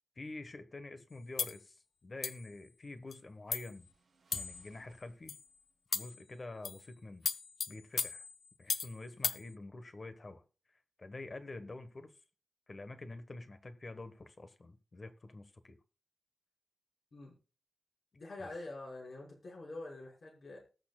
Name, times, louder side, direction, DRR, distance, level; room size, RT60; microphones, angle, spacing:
voice 1, 0.2-3.9 4.3-5.3 5.9-7.3 7.7-8.2 8.6-10.4 11.0-12.1 12.7-15.8 18.4-18.5, left 2 dB, 35° left, 10 dB, 1.3 m, -47 dB
sound 1, 1.4-1.6 2.2-2.5 3.1-3.2 3.5-3.7 4.3-4.7 5.3-5.4 5.9-6.2 6.6-6.9 7.3-9.0 9.2-9.4, left 5 dB, 75° left, 0.7 m, -36 dB
sound 2, 3.3-5.7, right 5 dB, 65° right, 1.2 m, -58 dB
voice 2, 18.1-20.6, left 2 dB, 55° left, -2 dB, 5.6 m, -46 dB
19.5 x 6.6 x 2.4 m, 0.34 s
wide cardioid pair, 145°, 0 cm